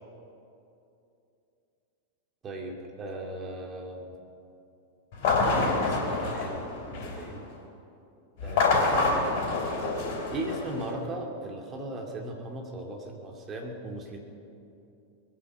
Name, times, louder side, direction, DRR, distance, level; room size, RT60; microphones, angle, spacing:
voice 1, 2.4-4.2 5.4-7.4 8.4-9.2 10.3-14.2, right 1 dB, 25° right, 1 dB, 2.5 m, -38 dB
sound 1, 5.1-7.3 8.4-10.9, left 3 dB, 50° left, 3.5 m, -27 dB
22.0 x 9.4 x 6.3 m, 2.7 s
figure-of-eight pair, 90°, 0 cm